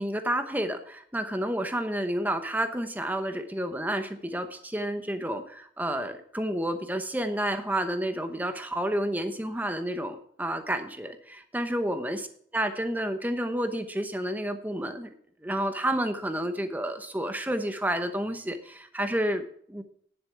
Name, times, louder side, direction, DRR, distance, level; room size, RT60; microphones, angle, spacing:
voice 1, 0.0-12.3 12.5-15.1 15.4-19.8, right 1 dB, 10° right, 8 dB, 0.9 m, -30 dB
10.5 x 7.4 x 5.8 m, 0.64 s
head